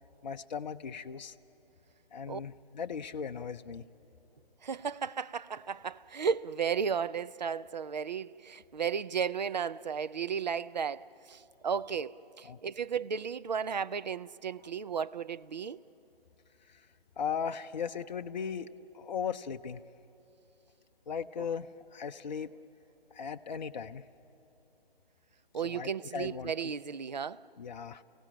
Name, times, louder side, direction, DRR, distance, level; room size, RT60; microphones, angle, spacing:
voice 1, 0.2-1.3 2.1-3.8 12.4-12.6 17.2-19.8 21.1-22.6 23.1-24.0 25.6-26.7 27.6-28.0, left 7 dB, 45° left, 0.6 m, -37 dB
voice 2, 4.6-15.8 21.4-21.5 25.5-27.4, right 6 dB, 45° right, 0.5 m, -34 dB
29.5 x 17.0 x 8.9 m
figure-of-eight pair, 140°, 30 cm